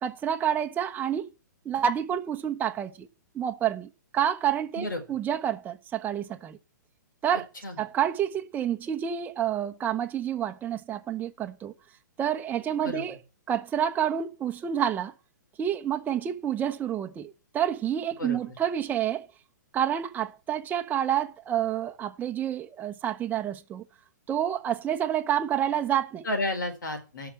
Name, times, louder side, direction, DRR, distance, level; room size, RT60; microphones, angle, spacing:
voice 1, 0.0-1.3 1.6-3.1 3.3-6.6 7.2-7.5 7.8-11.7 12.2-13.2 13.5-15.1 15.6-19.3 19.7-23.8 24.3-26.3, right 9 dB, 15° right, 0.8 m, -28 dB
voice 2, 18.2-18.6 26.2-27.3, left 2 dB, 85° left, 4.3 m, -32 dB
12.5 x 5.9 x 8.7 m
hypercardioid pair, 130°, 10 cm